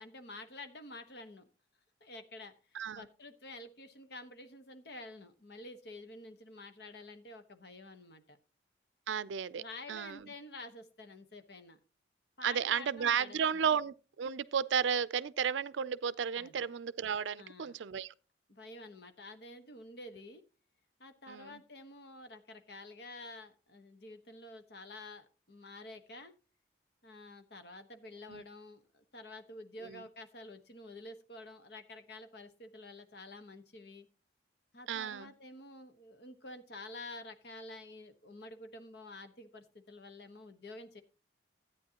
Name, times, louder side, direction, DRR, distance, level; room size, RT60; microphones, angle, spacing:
voice 1, 0.0-1.4 2.0-8.4 9.6-11.8 12.4-13.6 16.4-16.7 17.4-17.8 18.5-20.4 21.0-26.3 27.0-34.1 34.7-41.0, left 2 dB, 60° left, 1.2 m, -49 dB
voice 2, 2.7-3.1 9.1-9.6 9.9-10.3 12.4-18.1 21.3-21.6 28.3-28.4 29.8-30.0 34.9-35.3, right 7 dB, 75° right, 0.4 m, -33 dB
13.5 x 9.2 x 2.9 m
head